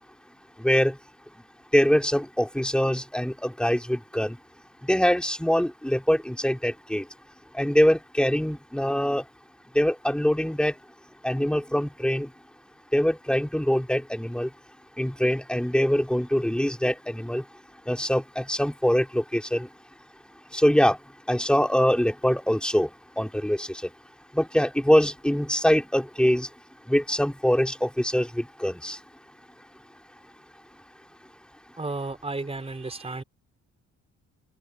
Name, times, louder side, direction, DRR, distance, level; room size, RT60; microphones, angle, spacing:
voice 1, 0.6-1.0 1.7-4.4 4.8-7.0 7.5-9.2 9.8-10.7 11.2-12.3 12.9-14.5 15.0-17.4 17.9-19.7 20.5-21.0 21.3-22.9 23.2-23.8 24.3-26.5 26.9-29.0, equal, 5° left, 3.8 m, -23 dB
voice 2, 31.8-33.2, right 3 dB, 20° right, 5.2 m, -33 dB
open air
cardioid pair, 90°, 30 cm